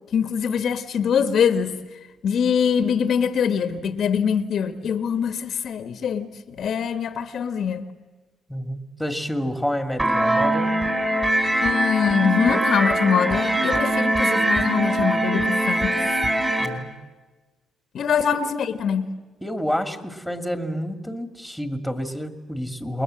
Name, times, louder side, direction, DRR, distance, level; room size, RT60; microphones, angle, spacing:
voice 1, 0.1-1.8 2.2-7.9 11.6-16.0 17.9-19.1, left 7 dB, 65° left, 1.3 m, -23 dB
voice 2, 8.5-10.7 16.6-16.9 19.4-23.0, equal, ahead, 2.3 m, -29 dB
sound 1, 10.0-16.7, right 1 dB, 15° right, 4.0 m, -22 dB
28.5 x 21.0 x 7.7 m
cardioid pair, 90°, 0 cm